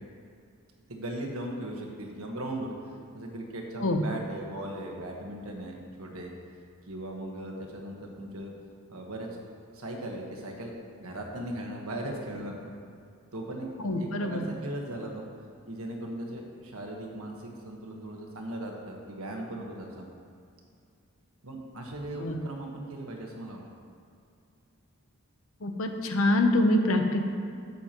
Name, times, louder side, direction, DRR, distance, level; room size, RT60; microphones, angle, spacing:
voice 1, 0.9-2.7 3.1-6.3 6.9-8.5 8.9-9.3 9.7-10.7 11.0-12.6 13.3-13.7 14.0-15.2 15.7-20.1 21.4-23.6, right 1 dB, 80° right, 0 dB, 1.4 m, -38 dB
voice 2, 13.8-14.4 22.2-22.4 25.6-27.2, left 1 dB, 65° left, 5 dB, 0.9 m, -25 dB
12.0 x 8.3 x 3.0 m, 2.4 s
head